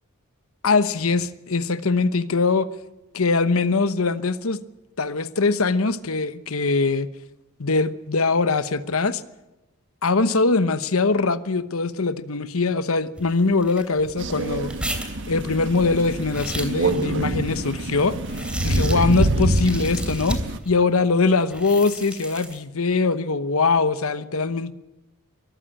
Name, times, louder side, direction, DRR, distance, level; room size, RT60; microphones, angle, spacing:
voice 1, 0.6-2.7 3.1-4.6 5.0-7.1 7.6-9.2 10.0-14.7 15.3-18.2 18.6-20.4 20.7-24.7, left 3 dB, 75° left, 13 dB, 1.0 m, -22 dB
sound 1, 13.2-20.7 21.4-22.6, right 1 dB, 5° right, 3.0 m, -35 dB
Crow, 14.2-20.6, right 1 dB, 60° right, 1.4 m, -26 dB
23.0 x 14.5 x 8.7 m, 1.0 s
head